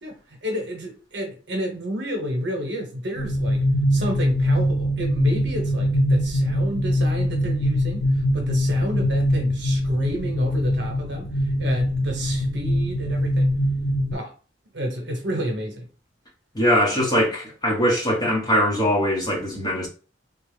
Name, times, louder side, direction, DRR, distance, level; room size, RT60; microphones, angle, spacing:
voice 1, 0.0-3.6 3.9-13.5 14.1-14.3 14.7-15.9, equal, 60° right, 1.1 m, -30 dB
sound 1, 3.2-14.1, equal, 60° left, 1.0 m, -23 dB
voice 2, 16.5-19.9, equal, 20° left, 1.3 m, -21 dB
3.5 x 2.3 x 3.3 m
head